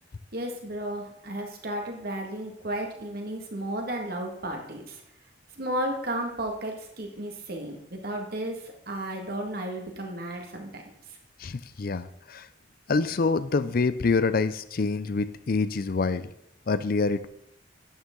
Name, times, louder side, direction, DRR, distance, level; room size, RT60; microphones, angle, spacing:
voice 1, 0.3-5.0 5.6-8.6 8.9-10.8, right 1 dB, 55° right, 2 dB, 1.8 m, -33 dB
voice 2, 11.4-12.5 12.9-16.3 16.7-17.3, left 4 dB, 50° left, 14 dB, 0.5 m, -26 dB
11.0 x 9.0 x 3.8 m, 0.74 s
head